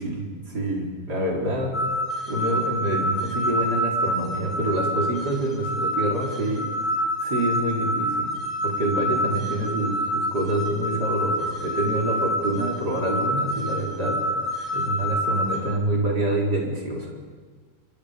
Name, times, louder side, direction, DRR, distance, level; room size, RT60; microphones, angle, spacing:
voice 1, 0.0-1.8 2.3-6.7 7.2-8.3 8.6-14.3 14.7-17.1, right 1 dB, 45° right, -2 dB, 4.7 m, -26 dB
sound 1, 1.7-15.6, equal, 60° left, 7.6 m, -27 dB
27.5 x 23.0 x 5.2 m, 1.5 s
omnidirectional pair, 2.4 m